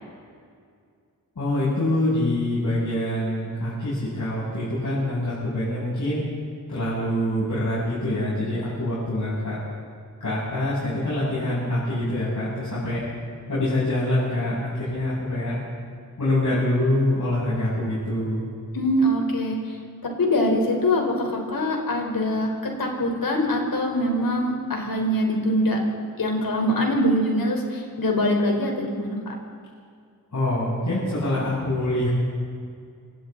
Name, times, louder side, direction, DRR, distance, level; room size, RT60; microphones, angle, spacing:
voice 1, 1.4-6.2 6.7-9.6 10.2-13.0 13.5-15.6 16.2-18.5 30.3-32.1, left 1 dB, 60° left, -10 dB, 8.0 m, -25 dB
voice 2, 18.7-19.8 20.0-25.8 26.2-29.2, left 1 dB, 75° left, 1 dB, 4.6 m, -23 dB
27.0 x 26.5 x 4.1 m, 2.2 s
wide cardioid pair, 110°, 35 cm